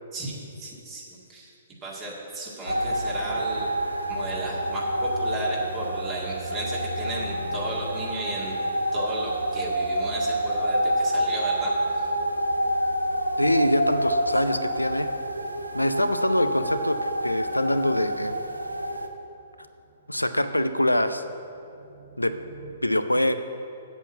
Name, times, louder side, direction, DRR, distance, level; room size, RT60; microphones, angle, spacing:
voice 1, 0.1-1.5 1.8-3.7 4.1-8.6 8.9-12.1, right 1 dB, 25° right, -3 dB, 1.9 m, -35 dB
sound 1, 2.7-19.1, right 1 dB, 85° right, 0.8 m, -28 dB
sound 2, 3.5-22.8, right 1 dB, 45° right, 1.7 m, -45 dB
voice 2, 13.4-15.1 15.7-18.4 20.1-21.2 22.2-22.3 22.8-23.3, left 1 dB, 85° left, 10 dB, 0.6 m, -24 dB
8.2 x 7.1 x 7.9 m, 2.7 s
figure-of-eight pair, 120°, 0 cm